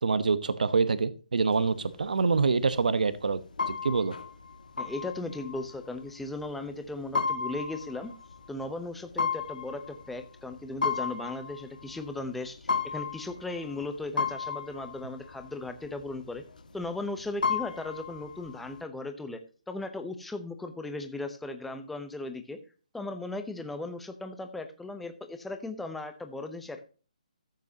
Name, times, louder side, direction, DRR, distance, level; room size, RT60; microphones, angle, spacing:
voice 1, 0.0-3.4 3.7-4.2, right 4 dB, 80° right, 14 dB, 1.0 m, -26 dB
sound 1, 1.5-18.8, left 5 dB, 90° left, 1.8 m, -35 dB
voice 2, 4.8-8.1 8.5-16.4 16.7-19.4 19.7-22.6 22.9-26.8, left 2 dB, ahead, 7 dB, 0.8 m, -37 dB
14.5 x 8.2 x 2.8 m, 0.36 s
hypercardioid pair, 170°, 4 cm